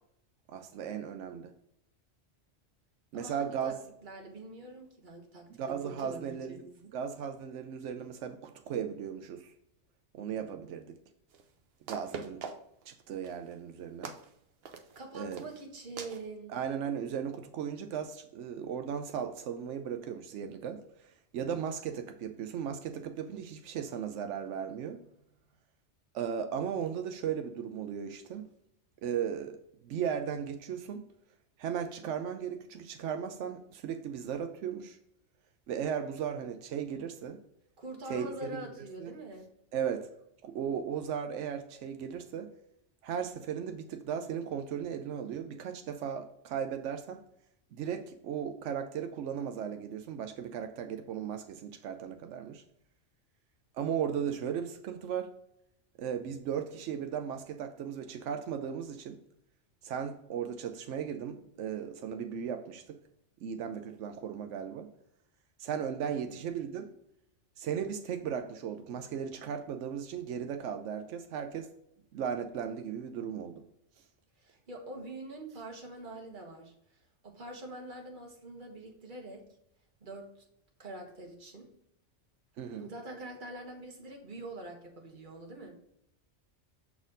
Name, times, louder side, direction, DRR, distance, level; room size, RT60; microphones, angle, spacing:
voice 1, 0.5-1.5 3.1-3.8 5.5-6.6 6.9-9.5 10.1-10.9 11.9-12.4 12.9-14.1 15.1-15.4 16.5-25.0 26.1-28.5 29.0-29.6 29.8-31.1 31.6-35.0 35.7-37.4 38.1-38.7 39.0-39.1 39.7-40.1 40.4-42.5 43.0-47.2 47.7-52.6 53.7-55.3 56.0-59.2 59.8-63.0 63.4-64.9 65.6-66.9 67.6-71.7 72.1-73.6 82.6-82.9, right 8 dB, 90° right, 7 dB, 0.9 m, -36 dB
voice 2, 3.1-3.8 4.0-6.9 14.9-16.5 37.8-39.5 66.0-66.4 74.4-79.4 80.0-80.4 80.8-81.7 82.8-85.8, right 2 dB, 45° right, 1 dB, 1.4 m, -45 dB
sound 1, 11.3-11.4 11.9-12.8 13.2-13.5 14.0-14.3 14.6-15.0 15.3-15.6 16.0-16.2, right 5 dB, 60° right, 0.9 m, -42 dB
7.1 x 4.2 x 3.8 m, 0.78 s
omnidirectional pair, 1.2 m